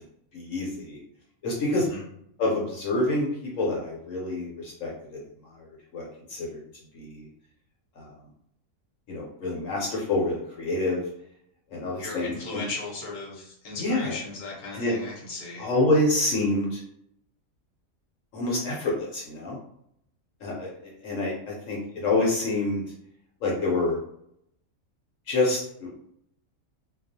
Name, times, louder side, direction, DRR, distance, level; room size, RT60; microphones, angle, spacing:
voice 1, 0.3-1.0 1.4-1.9 2.4-3.3 3.6-4.9 5.9-6.6 6.9-7.3 8.0-8.1 9.1-11.0 11.7-12.6 13.8-14.1 14.7-14.9 15.6-16.8 18.3-19.6 20.4-20.7 21.0-22.8 23.4-24.0 25.3-26.0, left 2 dB, 70° left, -3 dB, 1.0 m, -27 dB
voice 2, 1.7-2.0 11.8-15.7, left 3 dB, 40° left, -4 dB, 0.9 m, -37 dB
2.3 x 2.3 x 2.6 m, 0.71 s
omnidirectional pair, 1.5 m